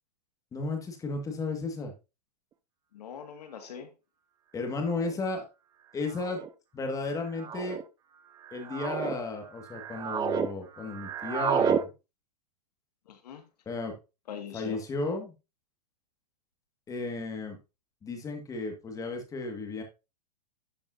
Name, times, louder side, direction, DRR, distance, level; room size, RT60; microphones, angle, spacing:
voice 1, 0.5-1.9 4.5-5.5 5.9-6.4 6.7-7.8 8.5-11.9 13.7-13.9 14.5-15.3 16.9-17.6 18.0-19.8, left 3 dB, 15° left, 1.9 m, -34 dB
voice 2, 2.9-3.9 13.1-13.4 14.3-14.8, left 8 dB, 70° left, 2.0 m, -42 dB
sound 1, 3.8-3.9 4.9-5.2 6.1-6.5 7.4-7.8 8.4-9.1 9.6-10.5 10.7-11.8, right 7 dB, 20° right, 0.6 m, -31 dB
11.5 x 5.3 x 2.7 m
hypercardioid pair, 130°, 21 cm